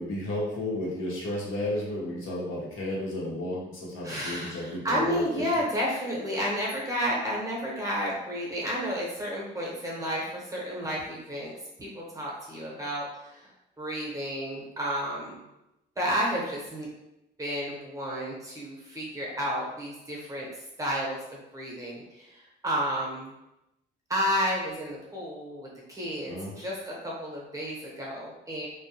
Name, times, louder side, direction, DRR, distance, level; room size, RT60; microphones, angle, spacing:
voice 1, 0.0-5.5 26.3-26.5, left 1 dB, 80° left, -4 dB, 0.8 m, -33 dB
voice 2, 4.0-11.5 11.8-13.5 13.8-15.4 16.0-16.9 17.4-20.5 20.8-23.3 24.1-28.7, equal, 15° right, -4 dB, 0.9 m, -31 dB
2.2 x 2.2 x 2.8 m, 0.90 s
cardioid pair, 90°, 20 cm